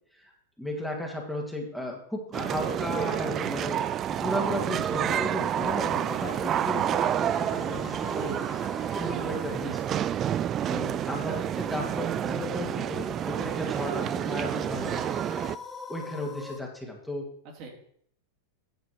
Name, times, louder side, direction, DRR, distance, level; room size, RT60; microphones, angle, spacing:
voice 1, 0.6-3.8 4.1-8.3 9.0-9.8 10.7-15.1 15.9-17.2, left 1 dB, ahead, -1 dB, 2.2 m, -34 dB
sound 1, 2.3-15.6, right 10 dB, 35° right, 0.4 m, -29 dB
sound 2, 5.5-16.6, left 4 dB, 20° left, 1.2 m, -45 dB
voice 2, 8.1-8.9 17.4-17.7, right 2 dB, 50° right, 0 dB, 3.0 m, -44 dB
9.5 x 6.8 x 4.7 m, 0.66 s
hypercardioid pair, 95°, 0 cm